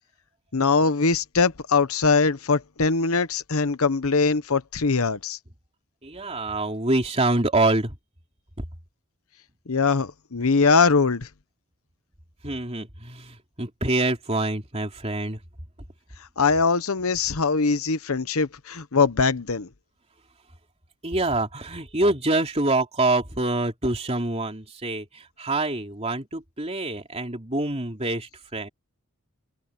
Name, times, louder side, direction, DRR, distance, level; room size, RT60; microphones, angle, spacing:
voice 1, 0.5-5.4 9.7-11.3 16.4-19.7, left 4 dB, 75° left, 1.0 m, -22 dB
voice 2, 6.0-8.0 12.4-15.4 21.0-28.7, right 2 dB, 30° right, 3.3 m, -26 dB
head